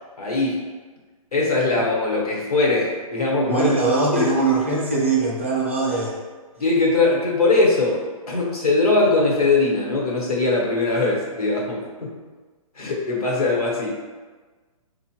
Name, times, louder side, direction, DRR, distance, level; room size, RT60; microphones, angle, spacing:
voice 1, 0.2-0.6 1.3-3.7 4.1-4.3 6.6-12.1 12.8-14.0, left 3 dB, 85° left, -3 dB, 1.2 m, -21 dB
voice 2, 3.5-6.2, right 3 dB, 20° right, -5 dB, 0.4 m, -21 dB
4.4 x 2.4 x 2.9 m, 1.4 s
hypercardioid pair, 175°, 19 cm